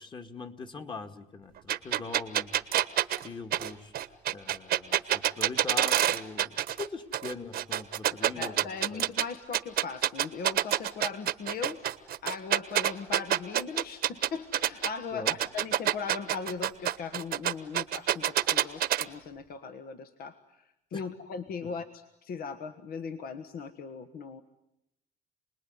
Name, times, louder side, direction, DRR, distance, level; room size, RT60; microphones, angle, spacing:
voice 1, 0.0-2.5 3.2-3.9 4.3-9.0 15.1-15.4 20.9-21.1 21.6-21.7, left 4 dB, 30° left, 7 dB, 2.1 m, -41 dB
sound 1, 1.7-6.9 7.1-9.2 9.5-14.9 15.3-19.0, right 12 dB, 65° right, 1.3 m, -27 dB
voice 2, 8.1-11.9 12.2-20.4 20.9-24.4, left 5 dB, 60° left, 8 dB, 1.5 m, -39 dB
29.0 x 20.5 x 9.6 m, 0.86 s
cardioid pair, 110°, 17 cm